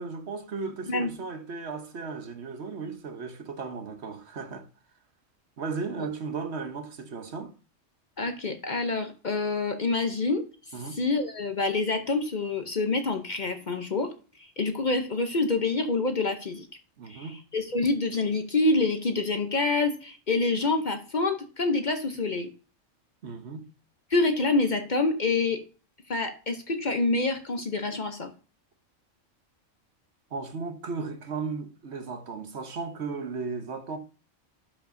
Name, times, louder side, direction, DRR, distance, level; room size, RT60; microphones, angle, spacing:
voice 1, 0.0-4.7 5.6-7.5 10.7-11.0 17.0-17.4 23.2-23.7 30.3-34.0, right 4 dB, 60° right, 1.2 m, -35 dB
voice 2, 8.2-14.1 14.4-16.7 17.1-22.5 24.1-25.6 26.1-28.3, left 3 dB, 45° left, 0.8 m, -27 dB
12.0 x 5.4 x 2.6 m
omnidirectional pair, 1.3 m